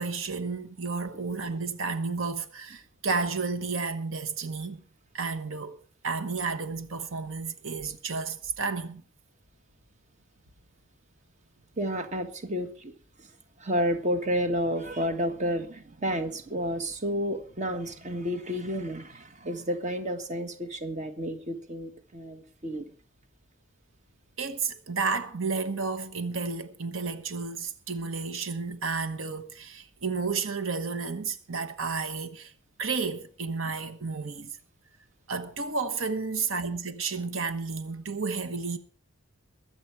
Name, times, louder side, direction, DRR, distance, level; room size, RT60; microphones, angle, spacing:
voice 1, 0.0-4.8 5.1-9.0 24.4-32.5 32.8-34.6 35.3-38.8, right 4 dB, 80° right, 1.2 m, -32 dB
voice 2, 11.8-12.9 13.2-13.3 13.6-22.9, equal, 35° right, 1.6 m, -31 dB
22.0 x 8.0 x 4.6 m
head